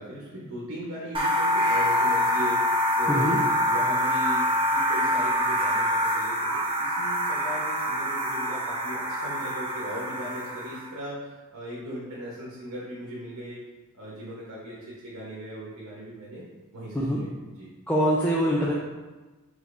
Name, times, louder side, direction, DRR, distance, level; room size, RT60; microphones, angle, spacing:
voice 1, 0.0-3.3 3.7-13.6 13.9-16.4 16.7-17.7, equal, 70° right, -6 dB, 1.1 m, -38 dB
sound 1, 1.1-10.9, equal, 25° right, 0.8 m, -25 dB
voice 2, 3.1-3.4 16.9-17.2 17.9-18.7, equal, 10° left, -4 dB, 0.5 m, -24 dB
5.0 x 4.1 x 2.6 m, 1.2 s
head